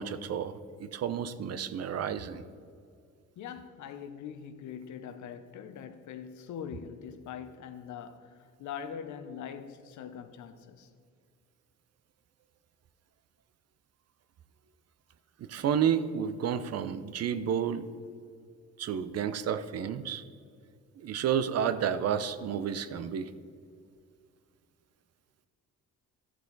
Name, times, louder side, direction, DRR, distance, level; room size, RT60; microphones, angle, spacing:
voice 1, 0.0-2.5 15.4-17.8 18.8-20.2 21.0-23.3, right 8 dB, 55° right, 0.6 m, -31 dB
voice 2, 3.4-10.9, left 8 dB, 75° left, 0.7 m, -42 dB
12.5 x 6.1 x 3.9 m
cardioid pair, 90°, 30 cm